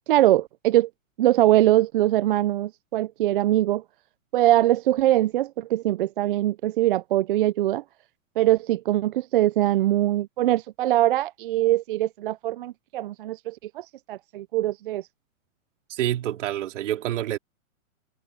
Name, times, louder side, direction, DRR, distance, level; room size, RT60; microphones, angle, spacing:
voice 1, 0.1-0.9 1.2-3.8 4.3-7.8 8.4-15.1, right 14 dB, 40° right, 0.4 m, -22 dB
voice 2, 15.9-17.4, right 12 dB, 60° right, 3.1 m, -27 dB
hypercardioid pair, 140°, 41 cm